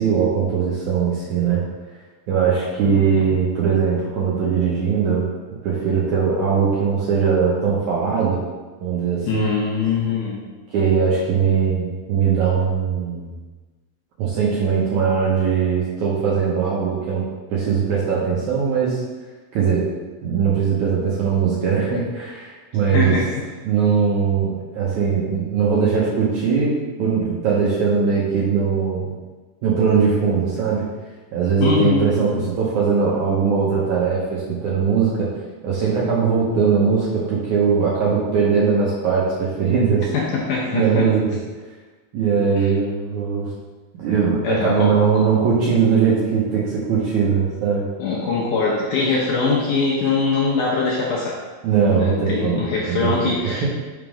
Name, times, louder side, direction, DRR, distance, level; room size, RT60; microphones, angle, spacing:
voice 1, 0.0-1.6 2.3-5.3 5.6-8.4 8.8-9.5 10.7-13.3 14.2-17.2 17.5-19.0 19.5-19.8 20.2-23.2 23.7-29.1 29.6-30.8 31.3-32.3 32.6-35.1 35.6-40.1 40.7-41.2 42.1-43.5 44.0-47.9 51.6-52.6 52.9-53.1 53.4-53.7, right 6 dB, 75° right, -6 dB, 1.8 m, -20 dB
voice 2, 9.3-10.4 22.9-23.3 31.6-32.5 40.1-41.1 42.6-42.7 44.4-44.9 48.0-51.4 52.0-53.6, left 4 dB, 75° left, -4 dB, 1.9 m, -22 dB
5.9 x 3.6 x 4.9 m, 1.3 s
omnidirectional pair, 4.4 m